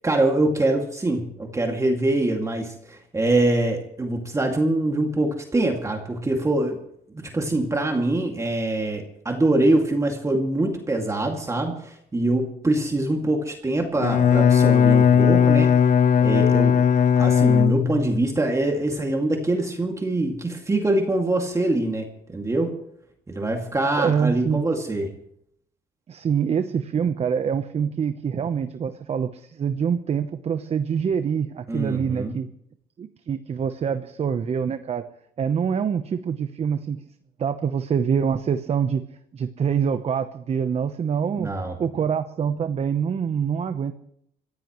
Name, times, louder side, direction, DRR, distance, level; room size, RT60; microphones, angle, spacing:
voice 1, 0.0-6.8 7.2-15.7 16.2-16.8 17.2-22.1 22.3-22.7 23.3-25.1 31.7-32.4 41.4-41.8, right 2 dB, 20° right, 2 dB, 2.2 m, -24 dB
Bowed string instrument, 13.9-18.2, left 7 dB, 50° left, 0.7 m, -17 dB
voice 2, 24.0-24.7 26.1-32.5 33.0-35.0 35.4-37.1 37.4-39.0 39.3-41.5 41.8-43.9, right 7 dB, 40° right, 10 dB, 0.9 m, -25 dB
24.5 x 15.5 x 3.1 m, 0.73 s
cardioid pair, 110°, 17 cm